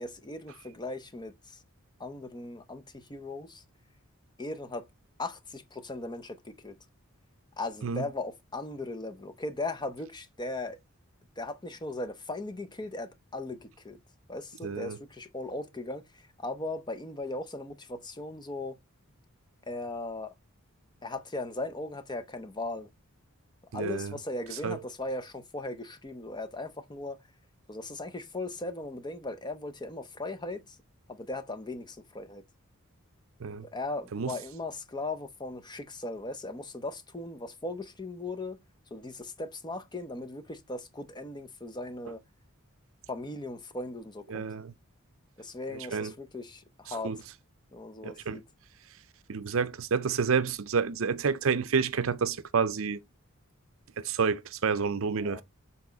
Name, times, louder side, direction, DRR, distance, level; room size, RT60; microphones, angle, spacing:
voice 1, 0.0-1.6 2.0-3.6 4.4-4.9 5.2-6.7 7.6-10.8 11.4-14.0 14.3-18.8 19.7-20.3 21.0-22.9 23.7-27.2 27.7-30.8 31.1-32.4 33.7-38.6 38.9-42.2 43.1-44.5 45.4-47.1 47.7-48.4 55.2-55.4, left 2 dB, 20° left, 0.7 m, -38 dB
voice 2, 14.6-15.0 23.7-24.2 24.6-24.8 33.4-33.7 34.1-34.3 44.3-44.7 45.7-46.1 46.9-47.2 48.0-48.4 49.3-53.0 54.0-55.4, right 5 dB, 65° right, 0.5 m, -29 dB
7.2 x 4.2 x 3.9 m
head